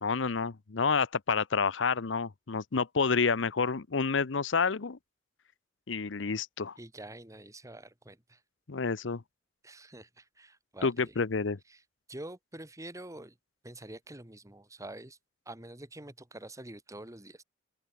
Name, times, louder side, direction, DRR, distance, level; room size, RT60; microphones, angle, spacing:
voice 1, 0.0-5.0 5.9-6.7 8.7-9.2 10.8-11.6, left 5 dB, 75° left, 0.8 m, -29 dB
voice 2, 6.8-8.4 9.6-11.2 11.7-11.8 12.1-13.4 13.6-15.2 15.4-17.4, right 1 dB, 15° right, 2.9 m, -46 dB
open air
head